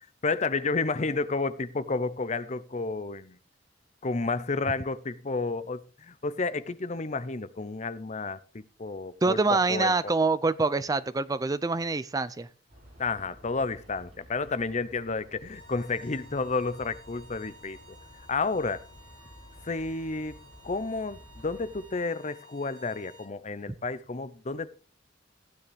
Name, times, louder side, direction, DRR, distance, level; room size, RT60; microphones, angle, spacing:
voice 1, 0.2-3.4 4.0-10.1 13.0-18.9 19.6-20.4 20.6-24.7, left 3 dB, 40° left, 0.7 m, -31 dB
voice 2, 9.2-12.5, right 3 dB, 20° right, 0.4 m, -25 dB
sound 1, 12.7-21.9, equal, 35° right, 7.4 m, -52 dB
sound 2, 15.5-23.4, equal, 80° right, 3.5 m, -54 dB
15.5 x 9.5 x 3.4 m
head